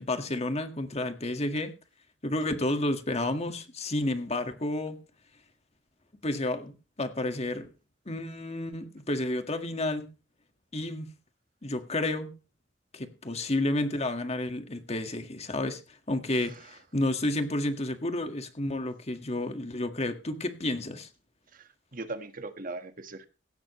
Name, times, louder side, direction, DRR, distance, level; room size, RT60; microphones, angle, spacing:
voice 1, 0.0-1.7 2.2-5.0 6.2-7.7 8.1-10.1 10.7-11.1 11.6-12.3 12.9-15.8 16.1-21.1, left 1 dB, 35° left, 1.8 m, -31 dB
voice 2, 21.5-23.3, right 2 dB, 45° right, 1.6 m, -40 dB
17.0 x 13.0 x 3.2 m
head